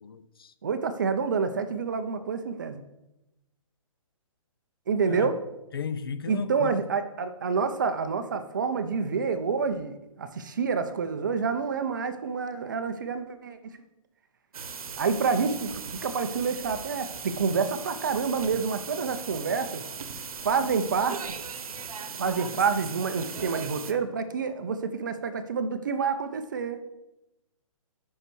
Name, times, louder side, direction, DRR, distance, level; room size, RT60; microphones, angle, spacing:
voice 1, 0.0-0.5 5.1-5.3 5.7-6.8, left 6 dB, 40° left, 0.4 m, -35 dB
voice 2, 0.6-2.8 4.9-5.4 6.3-13.6 15.0-15.7 16.0-19.8 20.4-21.2 22.2-26.8, right 5 dB, 35° right, 0.5 m, -28 dB
sound 1, 14.5-23.9, right 6 dB, 85° right, 0.9 m, -38 dB
5.6 x 5.5 x 6.1 m
hypercardioid pair, 175°, 18 cm